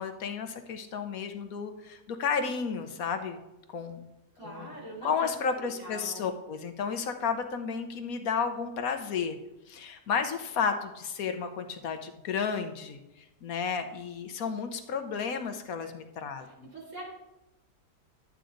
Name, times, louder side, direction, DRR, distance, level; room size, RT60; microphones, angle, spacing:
voice 1, 0.0-3.4 3.7-4.1 4.4-4.7 5.0-9.4 9.7-13.0 13.4-16.7, left 6 dB, 60° left, 7 dB, 1.2 m, -32 dB
voice 2, 4.4-6.2 16.4-17.0, right 1 dB, 45° right, -4 dB, 3.6 m, -43 dB
11.5 x 8.2 x 3.8 m, 0.94 s
omnidirectional pair, 1.9 m